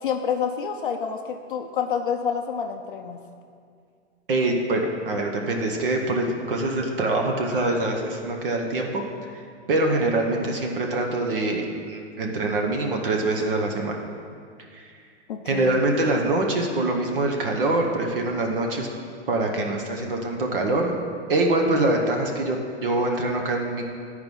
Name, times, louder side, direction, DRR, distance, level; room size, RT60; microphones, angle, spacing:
voice 1, 0.0-3.2 15.3-15.8, left 7 dB, 50° left, 4 dB, 0.4 m, -28 dB
voice 2, 4.3-9.0 9.7-14.0 14.7-14.8 15.5-18.9 19.3-20.9 21.3-23.8, right 2 dB, 50° right, 1 dB, 0.9 m, -24 dB
10.5 x 4.8 x 5.3 m, 2.2 s
hypercardioid pair, 175°, 35 cm